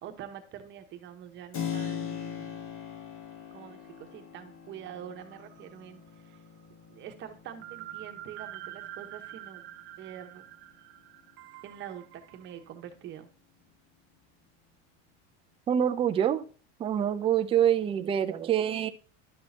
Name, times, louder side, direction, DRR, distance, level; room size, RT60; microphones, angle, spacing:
voice 1, 0.0-2.6 3.5-6.4 6.9-9.6 10.0-10.4 11.6-13.3, right 10 dB, 30° right, 6 dB, 1.1 m, -45 dB
Keyboard (musical), 1.5-10.1, left 8 dB, 35° left, 1.3 m, -41 dB
sound 1, 5.2-6.1 6.3-6.4 7.6-12.5, right 14 dB, 60° right, 0.9 m, -46 dB
voice 2, 15.7-16.5 16.8-18.9, right 9 dB, 15° right, 8 dB, 0.4 m, -26 dB
11.0 x 6.2 x 2.8 m, 0.39 s
supercardioid pair, 155°, 35 cm